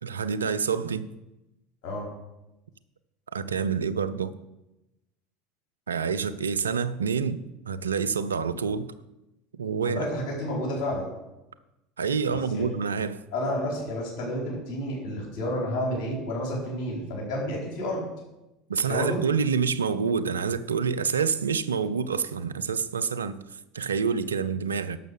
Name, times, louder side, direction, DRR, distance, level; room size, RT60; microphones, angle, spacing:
voice 1, 0.0-1.1 3.3-4.3 5.9-7.4 7.7-8.9 9.6-10.0 12.0-13.2 18.7-23.4 23.7-25.0, right 6 dB, 85° right, 12 dB, 0.5 m, -27 dB
voice 2, 9.8-11.1 12.3-12.7 13.3-18.1 18.9-19.2, left 1 dB, 55° left, -3 dB, 4.4 m, -30 dB
11.0 x 6.5 x 6.6 m, 0.95 s
hypercardioid pair, 75°, 0 cm